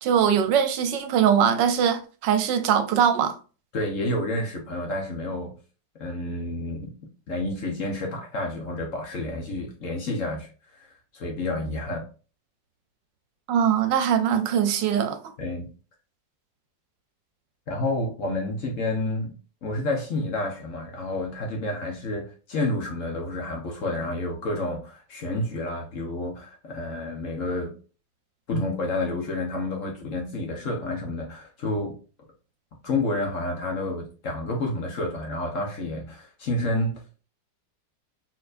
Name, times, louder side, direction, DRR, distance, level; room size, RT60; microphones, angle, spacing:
voice 1, 0.0-3.4 13.5-15.2, right 8 dB, 80° right, 1.3 m, -22 dB
voice 2, 3.7-5.5 6.0-6.9 7.3-12.0 15.4-15.7 17.7-19.4 19.6-27.7 28.5-32.0 32.8-37.0, left 2 dB, 50° left, 1.2 m, -29 dB
4.3 x 3.9 x 2.5 m
omnidirectional pair, 1.9 m